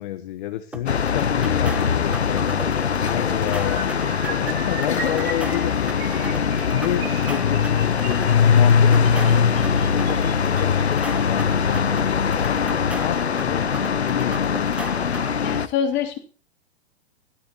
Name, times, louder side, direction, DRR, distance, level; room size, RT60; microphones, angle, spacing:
voice 1, 0.0-2.6 3.1-6.3 6.7-9.5 9.9-12.6 13.0-14.9, left 14 dB, 50° left, 11 dB, 1.0 m, -30 dB
sound 1, 0.7-15.6, right 2 dB, 5° right, 0.8 m, -37 dB
sound 2, 0.9-15.7, left 6 dB, 85° left, 0.8 m, -21 dB
sound 3, 3.6-10.8 11.6-11.8 12.1-12.3 12.6-12.8, right 5 dB, 60° right, 4.7 m, -37 dB
voice 2, 15.4-16.2, left 8 dB, 35° left, 3 dB, 2.8 m, -25 dB
17.0 x 13.0 x 2.9 m, 0.36 s
figure-of-eight pair, 105°, 32 cm